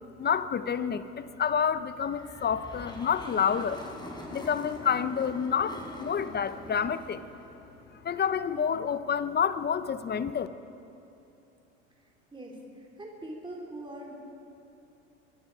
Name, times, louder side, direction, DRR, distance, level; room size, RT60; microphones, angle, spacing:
voice 1, 0.2-3.8 4.3-7.2 8.0-10.5, left 7 dB, 25° left, 13 dB, 0.9 m, -28 dB
sound 1, 2.0-8.4, left 1 dB, 10° left, 4.7 m, -44 dB
voice 2, 12.3-14.1, right 1 dB, 15° right, -1 dB, 3.8 m, -42 dB
24.5 x 23.0 x 5.0 m, 2.8 s
hypercardioid pair, 85°, 36 cm